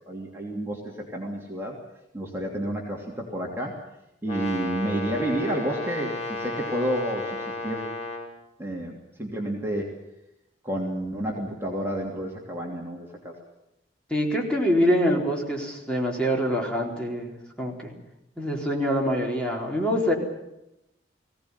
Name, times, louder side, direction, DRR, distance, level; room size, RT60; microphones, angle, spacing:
voice 1, 0.0-1.7 2.1-3.7 4.2-7.8 8.6-9.9 10.6-13.4, right 1 dB, 15° right, -2 dB, 3.1 m, -30 dB
Brass instrument, 4.2-8.3, left 2 dB, 40° left, 5.6 m, -33 dB
voice 2, 14.1-17.9 18.4-20.1, equal, 5° left, -1 dB, 4.2 m, -25 dB
21.0 x 17.5 x 9.8 m, 0.90 s
head